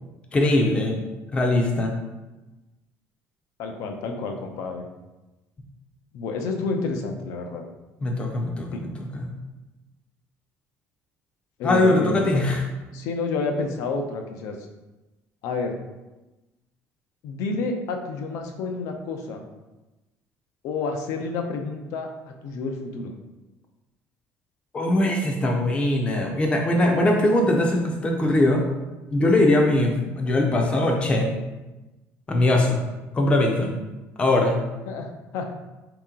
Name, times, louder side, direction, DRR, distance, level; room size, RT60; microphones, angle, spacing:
voice 1, 0.3-1.0 1.3-1.9 8.0-9.3 11.6-12.6 24.7-28.6 29.1-31.3 32.3-32.8 33.1-33.8 34.2-34.6, left 1 dB, 20° left, 1 dB, 0.6 m, -21 dB
voice 2, 3.6-4.8 6.1-7.6 8.7-8.8 11.6-12.4 12.9-14.6 15.4-15.8 17.2-19.5 20.6-23.1 34.9-35.5, left 3 dB, 70° left, 4 dB, 0.6 m, -29 dB
4.6 x 2.9 x 3.7 m, 1.1 s
cardioid pair, 170°, 6 cm